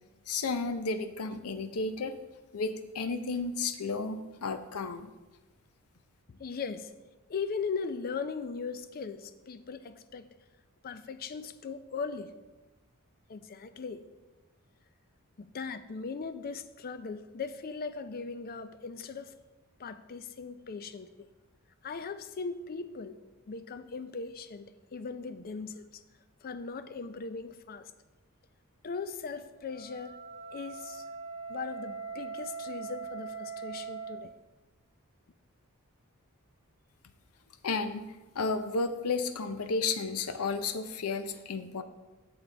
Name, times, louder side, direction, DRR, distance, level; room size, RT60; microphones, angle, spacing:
voice 1, 0.3-2.2 2.5-5.1 37.6-38.1 38.3-41.8, left 4 dB, 90° left, 0.6 m, -32 dB
voice 2, 6.3-6.9 7.3-10.3 10.8-12.3 13.3-14.1 15.4-19.3 19.8-21.3 21.8-23.2 23.5-26.0 26.4-27.9 28.8-30.2 30.5-31.0 31.5-34.3, left 5 dB, 45° left, 0.4 m, -39 dB
Wind instrument woodwind instrument, 29.6-34.2, right 5 dB, 20° left, 1.3 m, -41 dB
8.2 x 6.7 x 3.3 m
head